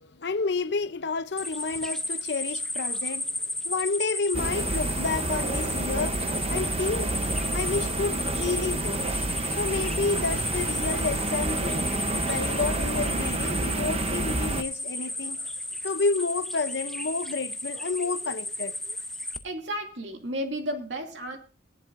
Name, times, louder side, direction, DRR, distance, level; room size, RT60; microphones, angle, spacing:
voice 1, 0.0-3.3 3.6-6.2 6.5-7.2 7.5-9.0 9.6-11.9 12.3-15.5 15.8-18.7, left 4 dB, 60° left, 0.6 m, -30 dB
sound 1, 1.4-19.4, left 1 dB, ahead, 0.7 m, -33 dB
sound 2, 4.3-14.6, right 2 dB, 30° right, 0.8 m, -29 dB
voice 2, 19.4-21.4, equal, 70° right, 2.4 m, -33 dB
21.5 x 11.5 x 2.5 m
head